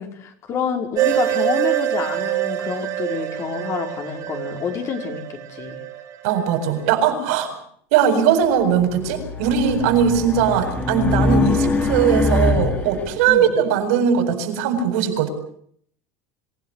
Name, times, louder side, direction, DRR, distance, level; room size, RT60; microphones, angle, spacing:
voice 1, 0.0-5.8 13.3-13.4, left 6 dB, 40° left, 4 dB, 5.1 m, -28 dB
sound 1, 0.9-6.7, right 14 dB, 45° right, 4.3 m, -25 dB
voice 2, 6.2-7.5 7.9-15.3, right 8 dB, 75° right, 6 dB, 7.9 m, -19 dB
Race car auto racing, 8.7-13.1, left 3 dB, 20° left, 4.0 m, -22 dB
27.0 x 17.0 x 8.4 m, 0.64 s
supercardioid pair, 140°, 8 cm